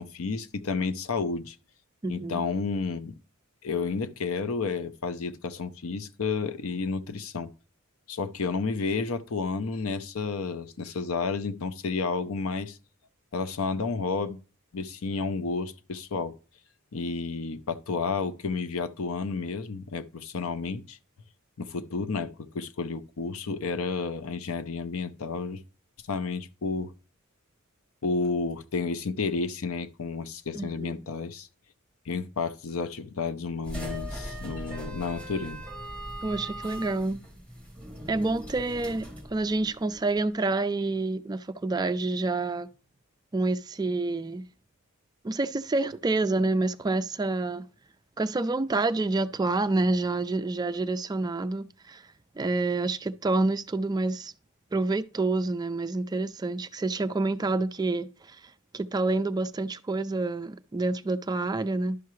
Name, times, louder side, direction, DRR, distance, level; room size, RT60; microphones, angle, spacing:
voice 1, 0.0-1.5 2.1-3.1 3.6-7.5 8.1-12.8 13.3-14.4 14.7-16.3 16.9-21.0 21.6-25.6 26.1-26.9 28.0-31.5 32.1-35.6, left 4 dB, 70° left, 0.6 m, -31 dB
voice 2, 2.0-2.4 30.5-30.9 36.2-37.2 38.1-42.7 43.3-44.5 45.2-47.7 48.2-52.0 52.4-54.3 54.7-62.0, right 2 dB, 20° right, 0.3 m, -28 dB
sound 1, 33.6-40.2, equal, 5° left, 2.2 m, -40 dB
11.5 x 5.7 x 3.1 m
head